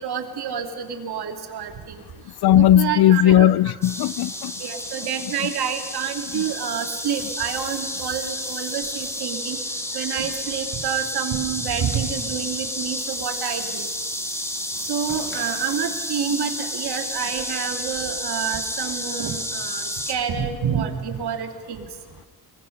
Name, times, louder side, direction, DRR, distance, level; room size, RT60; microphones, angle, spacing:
voice 1, 0.0-1.9 2.6-3.4 4.6-9.6 9.9-13.9 14.9-21.9, right 8 dB, 85° right, 2.5 m, -28 dB
voice 2, 2.4-4.5 5.2-5.3 6.3-6.4, left 11 dB, 75° left, 0.6 m, -17 dB
sound 1, 3.8-20.1, left 1 dB, 5° left, 2.6 m, -31 dB
sound 2, 15.1-17.9 19.1-19.2, left 2 dB, 30° left, 5.8 m, -47 dB
25.5 x 21.5 x 6.5 m
cardioid pair, 105°, 38 cm